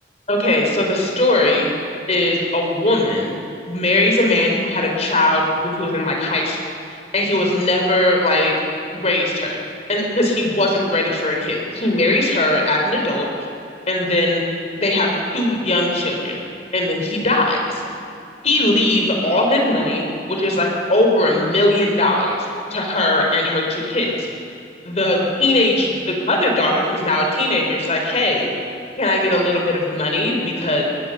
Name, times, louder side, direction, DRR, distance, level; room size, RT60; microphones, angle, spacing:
voice 1, 0.3-1.7 2.1-3.3 3.7-6.6 7.1-8.5 8.9-9.6 9.9-13.3 13.9-14.4 14.7-16.4 16.7-17.8 18.4-20.0 20.3-24.1 24.8-28.5 29.0-30.8, left 1 dB, 40° left, 1 dB, 4.4 m, -19 dB
22.5 x 18.5 x 6.8 m, 2.6 s
head